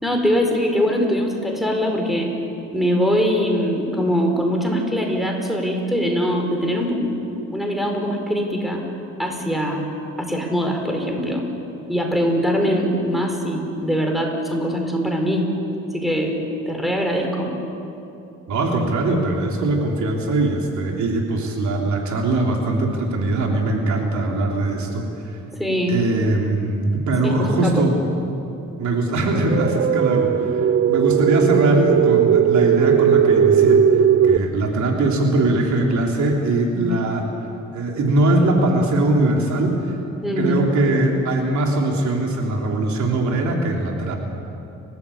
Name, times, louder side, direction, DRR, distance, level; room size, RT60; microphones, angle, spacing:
voice 1, 0.0-2.3 2.7-7.1 7.5-8.8 9.2-9.9 10.2-11.4 11.9-15.5 15.9-16.4 16.6-17.5 25.6-26.0 27.2-27.7 36.7-37.0 40.2-40.6, equal, ahead, 2 dB, 5.1 m, -22 dB
voice 2, 18.5-25.1 25.9-28.0 28.8-37.3 37.7-39.9 40.4-44.2, right 2 dB, 70° right, 1 dB, 3.4 m, -21 dB
sound 1, 29.4-34.4, right 8 dB, 45° right, 0.7 m, -17 dB
29.5 x 14.0 x 8.7 m, 2.8 s
cardioid pair, 90°, 30 cm